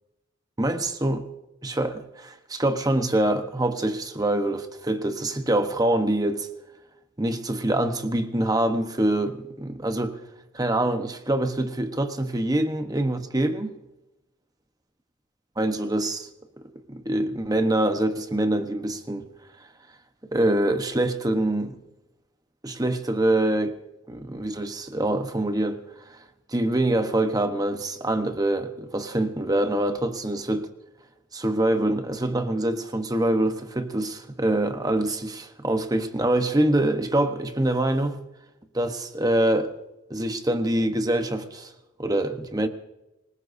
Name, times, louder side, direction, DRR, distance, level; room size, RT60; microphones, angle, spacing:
voice 1, 0.6-1.3 1.6-6.5 7.2-10.2 10.5-13.8 15.6-16.3 16.9-19.2 20.3-21.8 22.6-23.8 24.1-25.8 26.1-26.2 26.5-30.7 31.3-38.2 38.7-39.7 40.1-41.7 42.0-42.7, right 1 dB, 20° right, 1.0 m, -25 dB
26.0 x 20.5 x 2.7 m
head